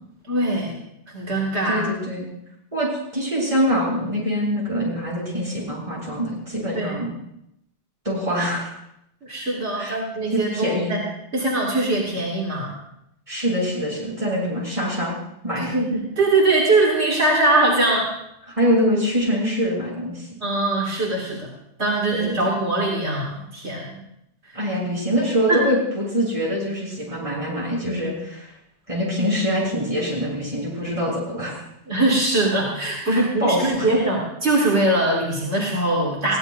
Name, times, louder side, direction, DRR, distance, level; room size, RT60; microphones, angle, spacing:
voice 1, 0.3-0.7 1.1-1.8 6.7-7.0 9.2-11.0 11.3-12.8 15.6-18.1 20.4-21.5 21.8-24.0 24.4-24.6 25.5-25.6 31.9-36.4, right 2 dB, 75° right, -2 dB, 2.7 m, -22 dB
voice 2, 1.7-2.3 2.7-7.1 8.0-8.7 9.8-10.0 10.3-10.9 13.3-15.1 15.4-15.7 18.5-20.3 22.1-22.3 24.5-28.5 28.9-31.6 33.1-33.9, equal, 30° right, -5 dB, 7.6 m, -24 dB
22.0 x 16.0 x 2.7 m, 0.80 s
omnidirectional pair, 1.1 m